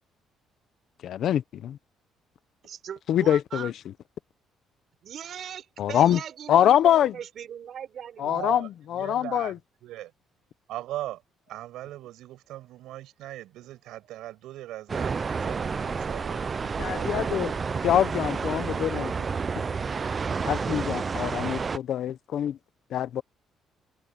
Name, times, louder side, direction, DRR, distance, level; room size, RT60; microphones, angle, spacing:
voice 1, 1.0-1.8 3.1-3.7 5.8-6.2 6.5-7.1 8.2-9.5 16.8-17.5 17.8-19.1 20.4-22.6 22.9-23.2, left 10 dB, 55° left, 0.8 m, -24 dB
voice 2, 2.6-3.7 5.0-8.5, right 9 dB, 45° right, 4.4 m, -39 dB
voice 3, 8.2-9.5 9.8-10.1 10.7-11.2 11.5-16.5 16.9-17.6, right 15 dB, 85° right, 7.0 m, -39 dB
sound 1, 14.9-21.8, right 5 dB, 25° right, 0.4 m, -30 dB
cardioid pair, 160°, 0 cm